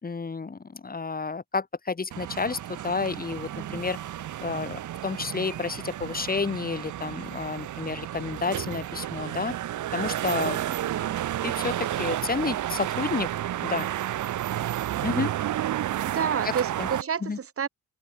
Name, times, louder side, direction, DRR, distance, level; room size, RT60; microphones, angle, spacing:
voice 1, 0.0-4.0 4.4-9.5 9.9-10.6 11.4-13.3 13.6-13.9 15.0-15.3 16.8-16.9 17.2-17.4, left 4 dB, 30° left, 5.0 m, -30 dB
sound 1, 2.1-17.0, right 12 dB, 75° right, 4.2 m, -31 dB
voice 2, 3.5-3.8 10.6-11.3 14.9-15.3 16.1-17.7, right 7 dB, 50° right, 4.6 m, -31 dB
open air
cardioid pair, 90°, 30 cm